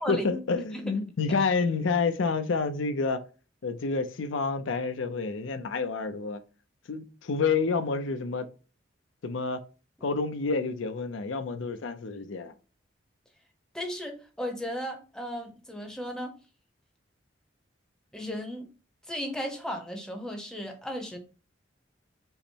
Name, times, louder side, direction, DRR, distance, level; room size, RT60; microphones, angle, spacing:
voice 1, 0.1-3.2 3.6-6.4 6.9-8.5 9.2-9.6 10.0-12.5, left 4 dB, 75° left, 0.5 m, -28 dB
voice 2, 13.7-16.3 18.1-18.7 19.1-21.2, equal, 5° left, 0.7 m, -35 dB
5.5 x 2.1 x 4.4 m
head